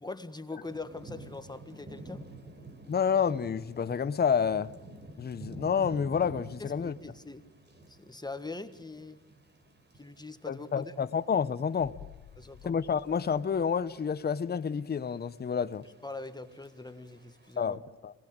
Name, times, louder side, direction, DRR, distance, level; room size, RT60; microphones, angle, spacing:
voice 1, 0.0-2.2 6.6-7.4 7.9-9.2 9.9-10.9 12.4-12.7 16.0-17.8, left 3 dB, 15° left, 1.5 m, -42 dB
Thunder / Rain, 0.6-17.7, right 1 dB, 35° right, 3.9 m, -50 dB
voice 2, 2.9-4.7 5.2-6.9 10.5-11.9 12.6-15.8 17.6-18.1, left 7 dB, 30° left, 1.0 m, -29 dB
sound 1, 11.8-14.5 14.8-14.9, left 11 dB, 80° left, 1.7 m, -53 dB
27.0 x 20.0 x 8.8 m
cardioid pair, 90°, 30 cm